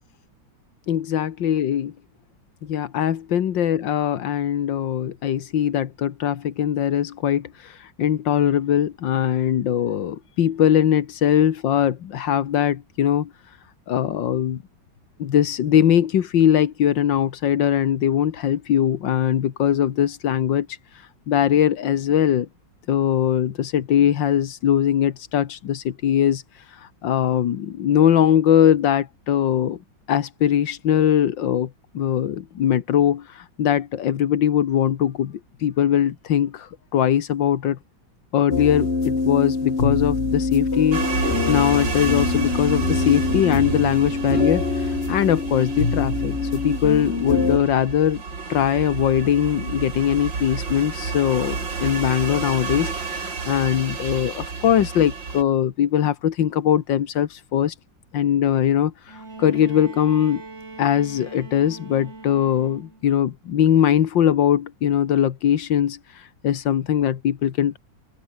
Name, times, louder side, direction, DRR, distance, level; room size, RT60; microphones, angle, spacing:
voice 1, 0.9-1.9 2.6-13.6 13.9-14.6 15.2-22.5 22.9-29.8 30.1-31.7 31.9-37.8 38.3-48.2 48.5-57.8 58.1-60.4 60.8-67.8, left 10 dB, 85° left, 1.9 m, -21 dB
sound 1, 38.5-47.6, left 3 dB, 35° left, 2.8 m, -24 dB
sound 2, 40.9-55.4, right 4 dB, 85° right, 3.8 m, -30 dB
Bowed string instrument, 59.1-63.1 64.4-64.5, right 3 dB, 35° right, 3.2 m, -40 dB
omnidirectional pair, 2.0 m